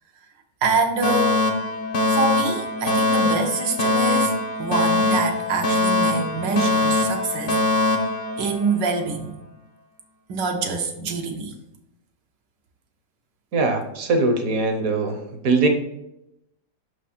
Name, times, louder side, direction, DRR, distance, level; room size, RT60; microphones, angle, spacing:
voice 1, 0.6-1.4 2.1-7.6 8.4-9.3 10.3-11.6, right 4 dB, 85° right, 3 dB, 1.6 m, -25 dB
Alarm, 1.0-9.0, left 2 dB, 45° left, 0.8 m, -22 dB
voice 2, 13.5-15.7, right 3 dB, 60° right, 5 dB, 1.1 m, -21 dB
5.9 x 4.9 x 4.2 m, 0.87 s
omnidirectional pair, 1.8 m